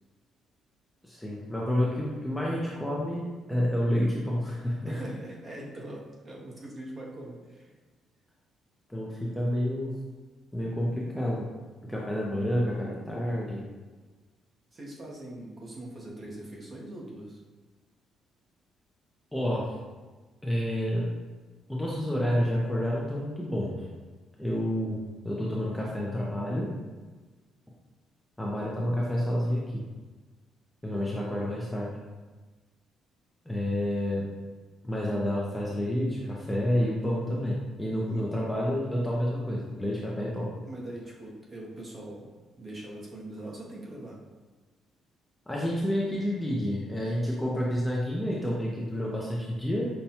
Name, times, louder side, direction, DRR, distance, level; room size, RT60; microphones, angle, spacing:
voice 1, 1.0-5.0 8.9-9.9 10.5-11.5 11.8-13.6 19.3-19.7 20.4-21.1 21.7-23.7 24.4-26.7 28.4-29.8 30.8-31.9 33.5-34.3 34.8-40.5 45.5-49.9, equal, 5° left, -5 dB, 0.5 m, -29 dB
voice 2, 4.8-7.7 14.7-17.4 38.1-38.3 40.7-42.3 42.6-44.2, right 1 dB, 30° right, -2 dB, 0.7 m, -42 dB
5.4 x 2.2 x 2.8 m, 1.3 s
cardioid pair, 145°, 0 cm